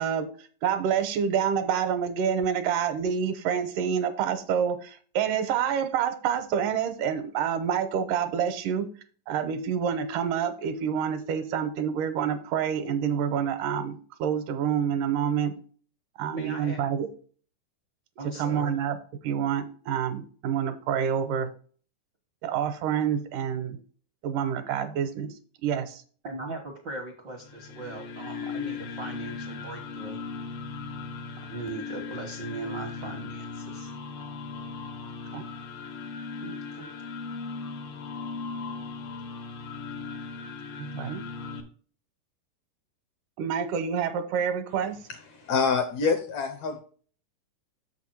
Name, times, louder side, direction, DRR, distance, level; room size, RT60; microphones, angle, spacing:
voice 1, 0.0-8.9 9.3-15.5 16.2-17.1 18.4-19.0 19.2-21.5 22.4-23.8 24.2-25.3 25.6-26.0 35.3-35.4 36.4-36.9 40.8-41.2 43.4-45.0, right 8 dB, 80° right, 10 dB, 2.2 m, -28 dB
voice 2, 16.3-16.9 18.2-18.7 26.2-30.2 31.5-33.9, right 2 dB, 60° right, 1 dB, 1.1 m, -38 dB
sound 1, 27.4-41.6, left 4 dB, 90° left, 3.0 m, -38 dB
voice 3, 45.3-46.8, left 5 dB, 70° left, 6 dB, 1.7 m, -26 dB
7.0 x 5.9 x 4.5 m, 0.43 s
omnidirectional pair, 3.9 m